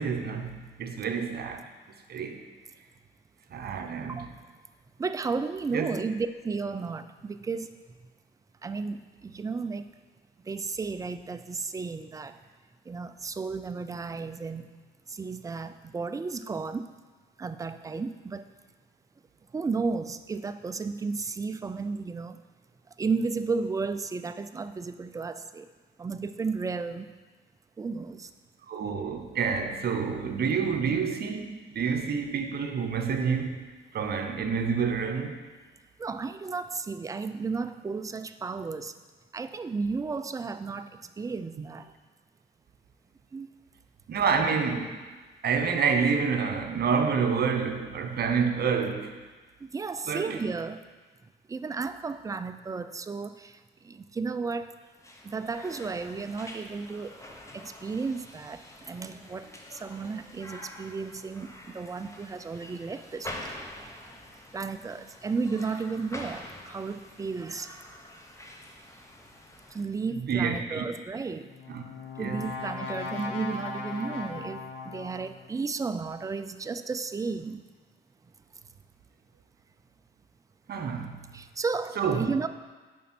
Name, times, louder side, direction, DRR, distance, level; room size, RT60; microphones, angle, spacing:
voice 1, 0.0-1.7 2.1-2.4 3.5-4.3 5.7-6.0 28.7-33.6 33.9-35.4 41.6-41.7 44.1-45.0 45.4-49.2 50.1-50.4 70.1-70.8 71.7-71.8 72.2-72.5 80.7-81.3 82.0-82.3, right 6 dB, 55° right, 0.8 m, -28 dB
voice 2, 5.0-7.8 8.6-9.8 10.5-12.4 12.9-14.7 15.1-16.9 17.4-18.5 19.5-22.4 23.0-25.7 26.0-27.1 27.8-28.3 36.0-38.9 39.3-40.9 41.2-41.9 43.3-43.5 49.7-50.8 51.5-53.6 53.8-54.7 55.2-58.6 58.9-63.5 64.5-67.8 69.7-71.5 72.2-77.6 81.3-82.5, right 4 dB, 15° right, 0.3 m, -33 dB
sound 1, 54.9-69.8, left 1 dB, 15° left, 0.9 m, -46 dB
Brass instrument, 71.3-75.5, left 4 dB, 85° left, 1.0 m, -38 dB
7.1 x 5.2 x 4.4 m
cardioid pair, 90°, 20 cm